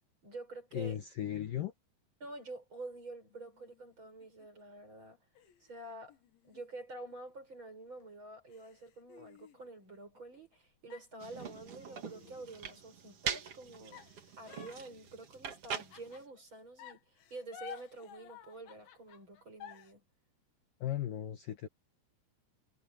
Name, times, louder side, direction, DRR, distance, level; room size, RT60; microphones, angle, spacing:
voice 1, 0.2-1.0 2.2-5.2 5.6-6.2 6.5-14.0 14.4-17.0 17.3-20.0, right 2 dB, 25° right, 7.6 m, -48 dB
voice 2, 0.7-1.7 20.8-21.7, left 11 dB, 65° left, 2.4 m, -36 dB
sound 1, 3.3-4.6 5.4-7.5 8.0-8.1 8.5-10.6 10.9-12.9 13.9-16.4 16.8-19.9, left 8 dB, 80° left, 4.4 m, -54 dB
sound 2, 11.2-16.2, right 7 dB, 50° right, 1.9 m, -43 dB
omnidirectional pair, 5.2 m